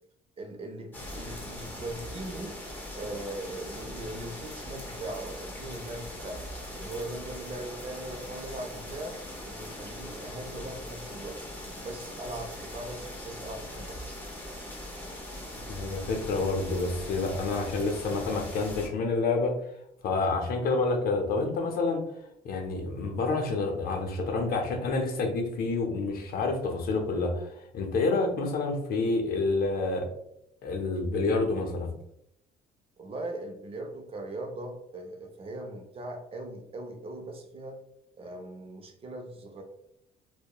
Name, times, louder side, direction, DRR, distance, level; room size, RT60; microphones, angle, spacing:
voice 1, 0.4-2.6 3.0-6.4 6.7-9.2 9.4-11.4 11.7-14.1 33.0-37.8 38.2-39.6, right 1 dB, 35° right, 4 dB, 0.4 m, -40 dB
sound 1, 0.9-18.9, left 1 dB, 10° left, 0.6 m, -41 dB
voice 2, 15.7-19.5 20.0-22.0 22.4-30.1 30.6-31.9, left 3 dB, 60° left, 3 dB, 0.6 m, -28 dB
2.8 x 2.1 x 2.2 m, 0.76 s
cardioid pair, 110°, 17 cm